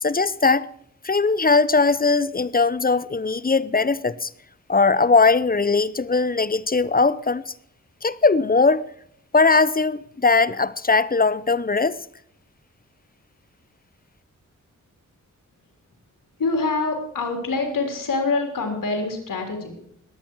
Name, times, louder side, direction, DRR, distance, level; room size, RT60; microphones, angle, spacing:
voice 1, 0.0-0.7 1.0-4.3 4.7-7.5 8.0-8.8 9.3-12.0, left 4 dB, 30° left, 0.7 m, -19 dB
voice 2, 16.4-19.8, left 3 dB, 80° left, 3.7 m, -25 dB
21.5 x 8.8 x 4.6 m
cardioid pair, 50°, 32 cm